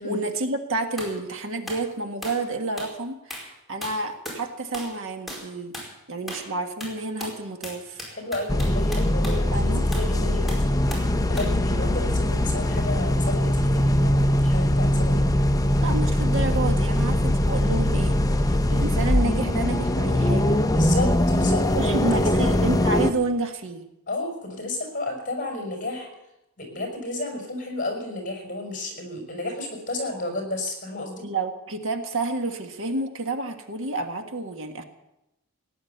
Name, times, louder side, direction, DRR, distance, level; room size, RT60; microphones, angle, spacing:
voice 1, 0.0-5.7 6.1-8.0 9.5-9.8 15.8-20.6 21.8-23.9 31.2-34.8, right 2 dB, 65° right, 5 dB, 1.7 m, -29 dB
sound 1, 1.0-1.2 1.7-1.9 2.2-2.5 2.8-3.0 3.3-3.5 3.8-4.4 4.7-5.0 5.3-5.5 5.7-5.9 6.3-6.5 6.8-9.4 9.9-10.1 10.5-11.1 11.4-11.6, equal, ahead, 4.9 m, -37 dB
voice 2, 8.1-10.9 11.3-15.2 20.7-22.5 24.1-26.1 26.6-31.3, left 2 dB, 40° left, 2 dB, 5.4 m, -32 dB
sound 2, 8.5-23.1, left 1 dB, 15° left, 0.8 m, -22 dB
17.5 x 10.5 x 8.0 m, 0.89 s
head